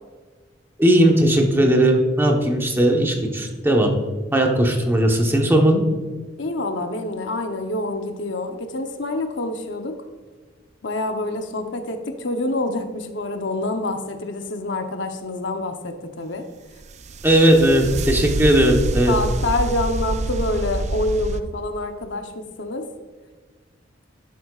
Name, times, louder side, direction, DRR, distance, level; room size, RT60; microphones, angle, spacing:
voice 1, 0.8-3.9 4.3-5.8 17.2-19.1, right 1 dB, 10° right, 1 dB, 1.1 m, -17 dB
voice 2, 6.4-9.9 10.8-16.4 19.1-22.8, left 2 dB, 70° left, 6 dB, 0.8 m, -27 dB
sound 1, 16.8-21.4, right 2 dB, 35° right, 0.4 m, -26 dB
11.0 x 8.5 x 2.4 m, 1.4 s
head